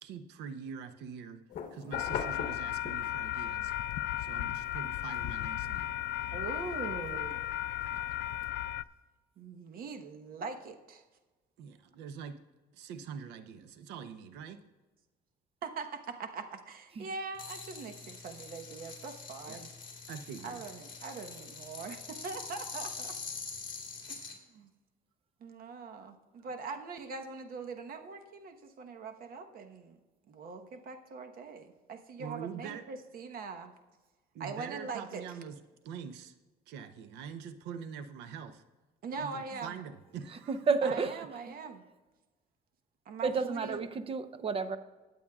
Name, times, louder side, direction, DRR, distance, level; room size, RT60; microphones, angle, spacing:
voice 1, 0.0-1.4 1.7-3.7 4.2-5.9 7.9-8.1 11.6-12.4 12.7-14.6 19.5-19.6 20.1-20.6 26.4-26.5 32.2-32.8 34.3-35.6 35.8-36.3 36.7-38.6 39.1-40.9, right 7 dB, 90° right, 11 dB, 0.8 m, -44 dB
sound 1, 1.5-3.4 3.8-8.5, left 7 dB, 55° left, 1.2 m, -44 dB
Railroad crossing in Kansas, 1.9-8.8, left 13 dB, 75° left, 0.4 m, -35 dB
voice 2, 6.3-7.4 9.4-11.0 15.6-19.7 20.4-23.1 24.1-24.2 24.5-24.7 25.4-30.0 30.3-33.7 34.4-35.2 39.0-39.8 40.8-41.8 43.0-43.9, right 4 dB, 60° right, 6 dB, 1.2 m, -42 dB
sound 2, 17.4-24.3, left 4 dB, 30° left, 2.6 m, -44 dB
voice 3, 40.5-41.1 43.2-44.8, right 4 dB, 35° right, 11 dB, 0.8 m, -30 dB
21.0 x 8.4 x 2.4 m, 1.2 s
cardioid pair, 110°, 17 cm